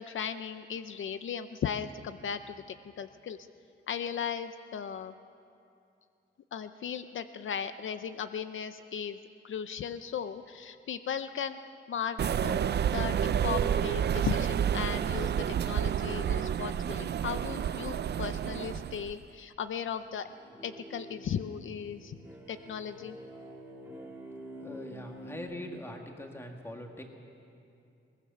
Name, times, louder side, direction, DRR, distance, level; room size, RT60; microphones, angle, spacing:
voice 1, 0.0-2.6 2.8-3.4 3.9-5.1 6.5-9.2 9.4-11.6 11.9-20.3 20.6-22.2 22.5-23.2, left 8 dB, 70° left, 11 dB, 0.6 m, -37 dB
sound 1, 12.2-19.1, right 9 dB, 55° right, 0.4 m, -30 dB
sound 2, 20.0-25.4, equal, 10° right, 2.2 m, -47 dB
voice 2, 24.6-27.0, left 1 dB, 10° left, 2 dB, 1.9 m, -42 dB
22.0 x 19.5 x 6.8 m, 2.5 s
wide cardioid pair, 165°, 21 cm